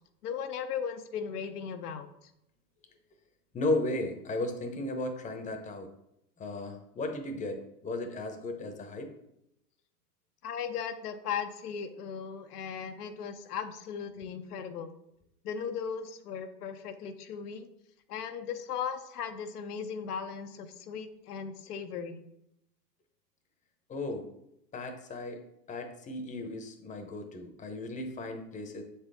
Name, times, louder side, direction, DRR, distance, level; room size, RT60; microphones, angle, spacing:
voice 1, 0.2-2.1 10.4-14.9 15.4-17.7 18.1-22.2, left 7 dB, 75° left, 8 dB, 0.8 m, -37 dB
voice 2, 3.5-5.9 6.4-9.1 14.2-14.3 23.9-24.3 24.7-25.4 25.7-28.8, left 2 dB, 15° left, 5 dB, 0.9 m, -35 dB
6.9 x 4.3 x 3.4 m, 0.80 s
hypercardioid pair, 105°, 47 cm